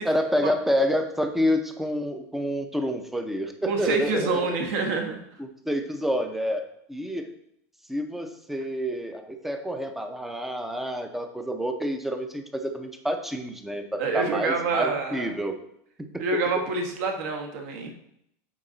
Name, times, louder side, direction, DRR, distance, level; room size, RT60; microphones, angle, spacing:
voice 1, 0.0-4.6 5.4-7.3 7.9-15.6 16.0-16.4, equal, 5° right, 6 dB, 0.5 m, -28 dB
voice 2, 3.6-5.2 14.0-15.3 16.2-17.9, right 4 dB, 65° right, 3 dB, 1.4 m, -27 dB
8.6 x 4.0 x 3.8 m, 0.75 s
supercardioid pair, 165°, 8 cm